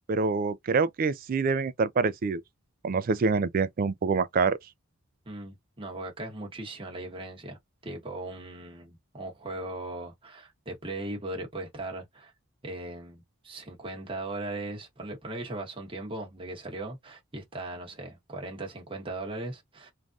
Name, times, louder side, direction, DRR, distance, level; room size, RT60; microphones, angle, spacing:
voice 1, 0.1-2.4 2.8-4.6, right 4 dB, 40° right, 0.3 m, -26 dB
voice 2, 5.3-12.3 12.6-19.9, right 2 dB, 25° right, 0.9 m, -38 dB
3.2 x 2.6 x 2.4 m
head